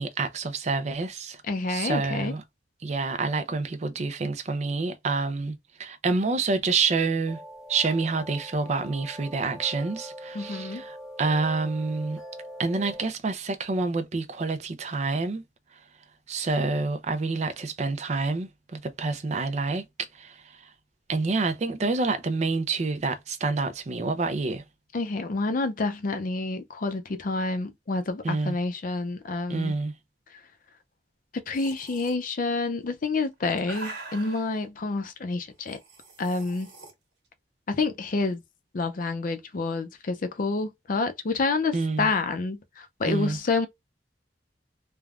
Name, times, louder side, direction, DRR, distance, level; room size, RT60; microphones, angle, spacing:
voice 1, 0.0-1.4 1.7-2.4 2.8-7.4 7.7-12.2 12.6-15.4 16.3-20.3 21.1-24.6 28.2-28.5 29.5-29.9 41.7-42.1 43.1-43.4, right 3 dB, 40° right, 0.5 m, -28 dB
voice 2, 1.4-2.3 10.3-10.8 24.9-29.7 31.3-35.8 36.2-36.7 37.7-38.4 38.7-43.7, left 3 dB, 50° left, 0.5 m, -28 dB
sound 1, 7.3-13.1, equal, ahead, 0.7 m, -43 dB
sound 2, 31.5-32.1 33.1-34.5 35.6-36.9, right 3 dB, 70° right, 1.3 m, -43 dB
3.3 x 2.2 x 2.4 m
head